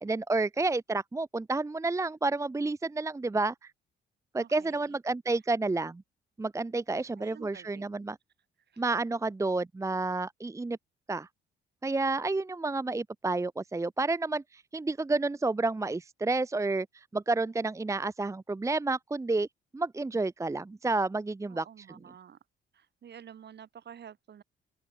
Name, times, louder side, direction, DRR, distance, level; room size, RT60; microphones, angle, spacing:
voice 1, 0.0-3.7 4.3-6.0 6.4-8.2 8.8-10.8 11.1-11.3 11.8-19.5 19.7-21.6, right 3 dB, 15° right, 0.8 m, -30 dB
voice 2, 4.4-5.0 6.9-8.1 8.7-8.8 21.5-22.4 22.7-24.4, right 8 dB, 60° right, 7.5 m, -51 dB
open air
cardioid pair, 90°, 20 cm